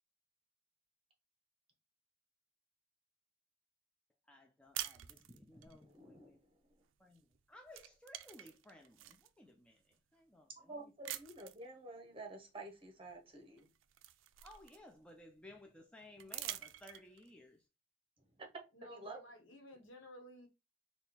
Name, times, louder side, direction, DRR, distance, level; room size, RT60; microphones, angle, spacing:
voice 1, 4.3-6.4 7.0-10.8 14.4-17.7, left 1 dB, 5° left, 0.3 m, -58 dB
sound 1, 4.7-5.7 7.1-7.4 7.7-9.3 9.9-10.0 11.0-11.7 13.1-13.2 13.6-15.1 16.2-17.3, right 13 dB, 85° right, 0.4 m, -46 dB
voice 2, 5.8-6.6 10.6-13.7 18.4-19.2, right 2 dB, 30° right, 0.9 m, -50 dB
voice 3, 18.7-20.5, equal, 75° left, 1.2 m, -55 dB
3.7 x 2.3 x 4.0 m
head